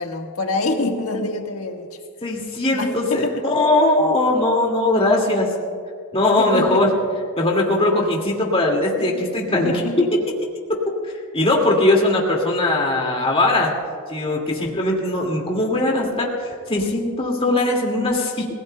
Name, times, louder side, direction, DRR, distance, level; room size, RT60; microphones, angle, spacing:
voice 1, 0.0-1.9 2.7-3.3 6.4-6.8 9.1-9.2 9.5-10.1 14.6-14.9, left 2 dB, 70° left, 2 dB, 1.6 m, -26 dB
voice 2, 2.2-5.5 6.1-6.9 7.4-10.1 11.0-13.7 14.1-18.5, left 2 dB, 25° left, -1 dB, 2.2 m, -20 dB
29.5 x 17.0 x 2.3 m, 2.1 s
head